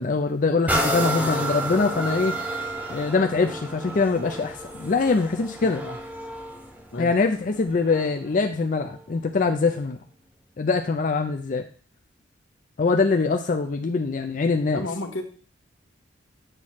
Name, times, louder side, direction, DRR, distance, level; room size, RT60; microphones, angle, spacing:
voice 1, 0.0-2.4 2.9-5.8 7.0-10.0 10.6-11.7 12.8-14.8, left 4 dB, 40° left, 5 dB, 0.4 m, -23 dB
sound 1, 0.7-8.3 8.9-9.0, right 1 dB, 10° right, 0.8 m, -30 dB
voice 2, 5.6-6.0 6.9-7.1 14.7-15.2, left 2 dB, 80° left, 5 dB, 1.1 m, -32 dB
8.0 x 3.1 x 5.7 m, 0.43 s
head